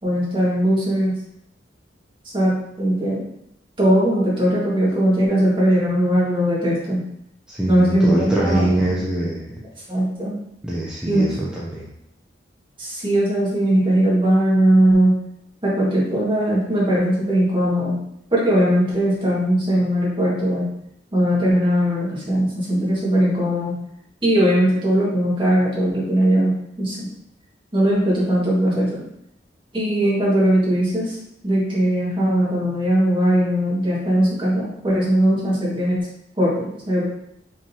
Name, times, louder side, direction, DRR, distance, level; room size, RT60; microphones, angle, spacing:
voice 1, 0.0-1.1 2.3-3.2 3.8-7.0 7.7-8.7 9.9-10.3 11.0-11.2 12.8-15.1 15.6-18.0 18.3-20.7 21.1-23.8 24.2-27.1 27.7-29.0 29.7-31.2 31.4-36.1 36.4-37.1, right 1 dB, 30° right, -7 dB, 1.8 m, -19 dB
voice 2, 7.5-9.6 10.6-11.9, right 1 dB, 5° right, -7 dB, 0.6 m, -23 dB
5.0 x 3.7 x 2.8 m, 0.77 s
head